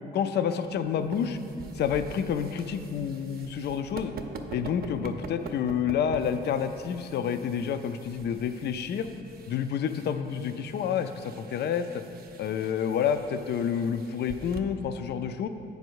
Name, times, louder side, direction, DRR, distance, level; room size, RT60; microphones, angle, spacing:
voice 1, 0.1-1.4 1.7-4.1 4.5-9.1 9.5-12.0 12.4-15.5, left 8 dB, 60° left, 10 dB, 0.4 m, -29 dB
sound 1, 0.6-14.6, right 4 dB, 50° right, 0.6 m, -45 dB
7.8 x 5.3 x 4.6 m, 2.6 s
cardioid pair, 90°, 20 cm